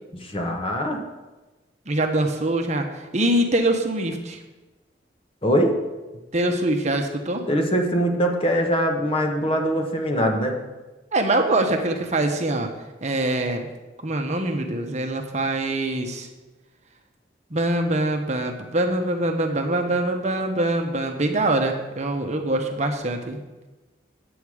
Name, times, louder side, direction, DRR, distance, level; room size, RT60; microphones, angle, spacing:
voice 1, 0.1-1.0 5.4-5.8 7.5-10.6, equal, 30° left, 3 dB, 1.1 m, -22 dB
voice 2, 1.9-4.4 6.3-7.4 11.1-12.7 13.0-13.7 14.0-16.3 17.5-23.4, right 1 dB, 40° right, 4 dB, 0.9 m, -24 dB
9.0 x 8.0 x 4.9 m, 1.1 s
head